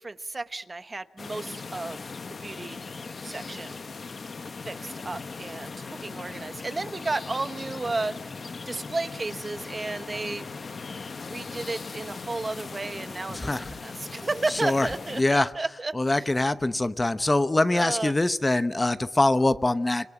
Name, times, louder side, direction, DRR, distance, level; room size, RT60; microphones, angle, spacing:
voice 1, 0.0-2.1 2.4-2.8 3.2-3.8 4.6-8.2 8.6-10.5 11.3-13.4 13.8-16.3 17.7-18.1, right 3 dB, 30° right, 1.0 m, -33 dB
sound 1, 1.2-15.2, left 4 dB, 45° left, 1.1 m, -39 dB
voice 2, 13.3-13.7 14.6-14.9 15.2-15.5 15.9-20.1, left 2 dB, 20° left, 0.9 m, -23 dB
26.0 x 26.0 x 8.9 m
wide cardioid pair, 105°, 0 cm